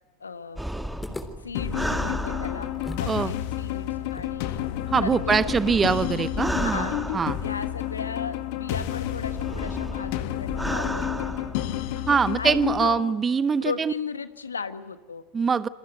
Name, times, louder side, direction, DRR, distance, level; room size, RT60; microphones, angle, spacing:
voice 1, 0.2-0.6 1.4-2.7 3.0-4.7 5.0-6.1 6.6-7.1 7.4-11.4 12.3-13.1 13.6-15.2, left 5 dB, 85° left, 11 dB, 1.4 m, -36 dB
sound 1, 0.6-3.1 4.3-8.0 8.8-11.8 12.5-12.8, right 1 dB, 5° right, 1.8 m, -33 dB
sound 2, 1.0-3.2 3.4-3.5 4.1-7.2, left 2 dB, 15° left, 3.7 m, -43 dB
sound 3, 1.5-13.0, left 13 dB, 60° left, 1.8 m, -30 dB
voice 2, 4.9-6.9 7.1-7.4 12.1-13.9 15.3-15.7, right 5 dB, 25° right, 16 dB, 0.8 m, -23 dB
28.5 x 22.5 x 8.0 m, 1.2 s
figure-of-eight pair, 80°, 0 cm